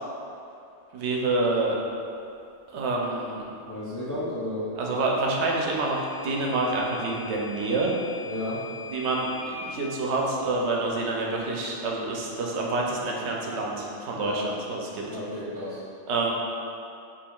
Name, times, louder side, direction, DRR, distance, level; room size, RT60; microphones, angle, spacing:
voice 1, 0.9-1.8 2.7-3.5 4.8-7.9 8.9-15.1 16.1-16.3, right 2 dB, 80° right, -2 dB, 0.9 m, -27 dB
voice 2, 3.7-4.7 8.3-8.6 14.1-14.4 15.1-15.8, left 1 dB, 25° left, -10 dB, 0.4 m, -32 dB
Microwave oven / Alarm, 5.4-9.5, left 4 dB, 75° left, 1.0 m, -43 dB
4.4 x 3.1 x 2.3 m, 2.6 s
omnidirectional pair, 1.1 m